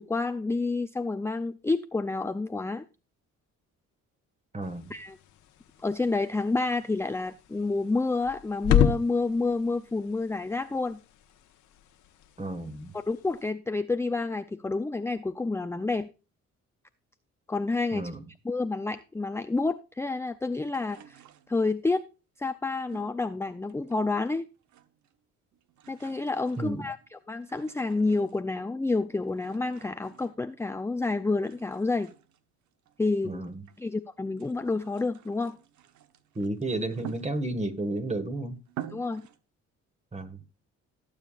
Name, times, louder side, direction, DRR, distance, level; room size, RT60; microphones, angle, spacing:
voice 1, 0.0-2.9 4.9-5.2 5.8-11.0 12.9-16.1 17.5-18.1 18.4-21.2 21.5-22.0 22.4-24.5 25.9-32.1 33.0-33.4 33.8-35.6 38.9-39.2, left 3 dB, 10° left, 0.4 m, -29 dB
voice 2, 4.5-4.9 12.4-12.9 17.9-18.2 26.6-26.9 33.2-33.7 36.4-38.6 40.1-40.4, right 2 dB, 20° right, 1.6 m, -32 dB
sound 1, 4.6-13.5, left 9 dB, 85° left, 1.2 m, -32 dB
sound 2, 20.7-21.9 22.9-24.4 24.6-25.2 25.5-28.6 29.2-30.9 31.2-33.9 34.3-37.8 38.3-38.4 38.7-39.4, right 11 dB, 70° right, 1.0 m, -49 dB
18.0 x 7.2 x 2.4 m
cardioid pair, 90°, 30 cm